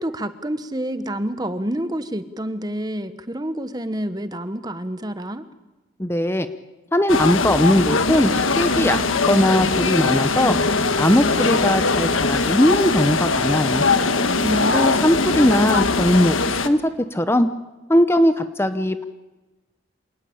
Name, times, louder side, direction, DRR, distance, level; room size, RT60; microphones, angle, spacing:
voice 1, 0.0-5.4 14.4-14.8 15.2-16.1, right 1 dB, 20° right, 11 dB, 1.1 m, -28 dB
voice 2, 6.0-6.5 6.9-8.3 8.6-9.0 9.2-10.6 11.0-13.8 14.7-17.5 17.9-19.0, left 1 dB, 10° left, 10 dB, 0.8 m, -19 dB
sound 1, 7.1-16.7, left 3 dB, 85° left, 1.5 m, -21 dB
27.0 x 19.0 x 8.7 m, 1.1 s
head